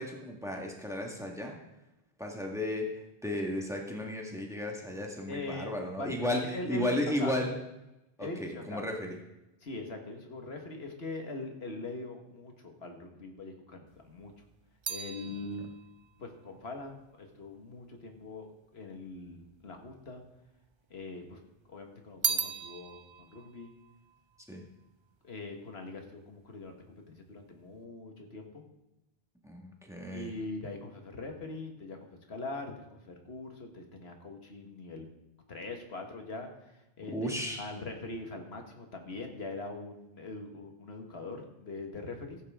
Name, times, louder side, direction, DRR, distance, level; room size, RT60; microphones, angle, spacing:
voice 1, 0.0-1.6 2.2-7.6 8.2-9.2 24.5-24.6 29.4-30.3 37.1-37.7, left 1 dB, 5° right, 0 dB, 1.6 m, -34 dB
voice 2, 5.3-7.3 8.2-8.9 9.6-14.3 14.9-15.7 16.2-18.5 18.7-20.2 20.9-21.4 21.7-23.7 25.2-26.8 27.1-28.6 30.1-35.1 35.5-37.3 37.6-42.4, left 3 dB, 85° left, 3 dB, 1.8 m, -42 dB
sound 1, 13.9-18.3 19.1-19.9 20.2-21.3 21.6-25.2 25.5-26.0, right 6 dB, 45° right, 0.4 m, -39 dB
15.0 x 8.8 x 3.6 m, 0.93 s
omnidirectional pair, 1.0 m